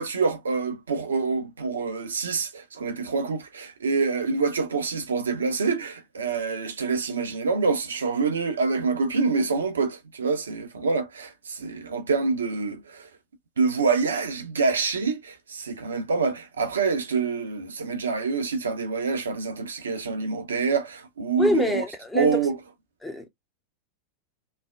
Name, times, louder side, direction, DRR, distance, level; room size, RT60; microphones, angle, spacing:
voice 1, 0.0-13.1 13.6-21.8 22.1-22.6, right 4 dB, 70° right, 0.5 m, -26 dB
voice 2, 21.4-22.4 23.0-23.3, left 1 dB, 5° left, 0.5 m, -25 dB
3.1 x 2.0 x 2.2 m
figure-of-eight pair, 90°, 0 cm